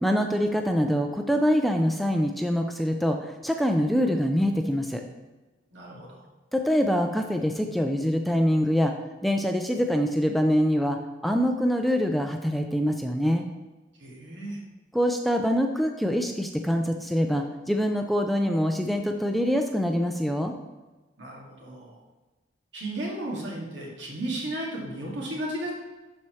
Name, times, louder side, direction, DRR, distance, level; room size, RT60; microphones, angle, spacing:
voice 1, 0.0-3.2 3.4-5.0 6.5-8.9 9.2-11.0 11.2-13.4 14.9-20.5, equal, ahead, 4 dB, 0.4 m, -24 dB
voice 2, 5.7-6.2 14.0-14.6 21.2-22.0 22.7-25.7, right 1 dB, 75° right, -3 dB, 2.1 m, -34 dB
11.5 x 4.3 x 3.2 m, 1.2 s
head